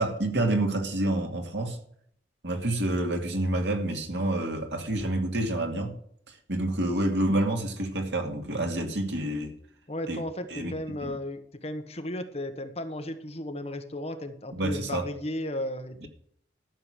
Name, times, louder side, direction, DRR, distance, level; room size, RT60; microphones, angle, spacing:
voice 1, 0.0-1.8 2.4-5.9 6.5-9.6 10.1-10.2 10.5-10.7 14.5-15.1 16.0-16.1, right 1 dB, 80° right, 2.3 m, -28 dB
voice 2, 9.9-16.1, left 1 dB, 35° left, 1.3 m, -35 dB
13.5 x 7.0 x 6.4 m
head